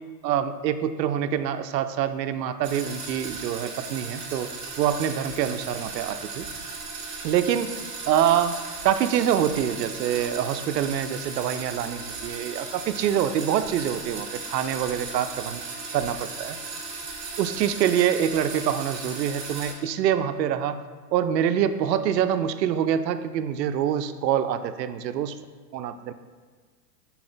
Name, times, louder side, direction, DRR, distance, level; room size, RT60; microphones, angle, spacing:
voice 1, 0.2-4.5 4.8-6.5 7.2-7.7 8.1-8.6 8.8-15.6 15.9-16.6 17.4-20.8 21.1-25.3 25.7-26.1, right 9 dB, 80° right, 11 dB, 0.6 m, -25 dB
sound 1, 2.6-19.7, right 4 dB, 30° right, 1.7 m, -36 dB
5.8 x 4.2 x 3.9 m, 1.5 s
hypercardioid pair, 130°, 50 cm